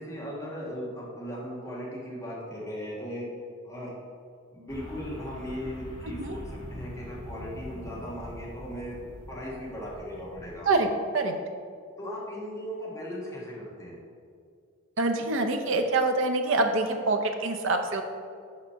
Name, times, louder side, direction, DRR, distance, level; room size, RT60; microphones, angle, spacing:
voice 1, 0.0-3.3 3.6-3.9 4.5-9.0 9.3-10.7 12.0-14.0, equal, 15° left, -6 dB, 1.5 m, -37 dB
sound 1, 4.7-10.7, equal, 85° left, 1.7 m, -43 dB
voice 2, 15.0-18.0, right 3 dB, 60° right, 5 dB, 0.6 m, -25 dB
5.9 x 5.1 x 5.6 m, 2.2 s
head